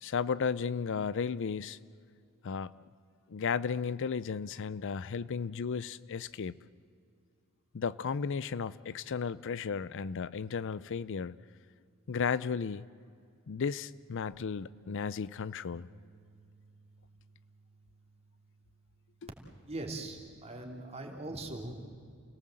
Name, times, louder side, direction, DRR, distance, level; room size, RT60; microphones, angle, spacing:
voice 1, 0.0-1.8 2.4-2.7 3.3-6.6 7.7-11.4 12.1-12.8 13.5-15.9, left 6 dB, 60° left, 17 dB, 0.5 m, -34 dB
sound 1, 14.3-20.6, right 4 dB, 55° right, 3.4 m, -61 dB
voice 2, 19.7-21.9, right 2 dB, 30° right, 2 dB, 3.0 m, -40 dB
29.0 x 18.0 x 7.7 m, 2.2 s
head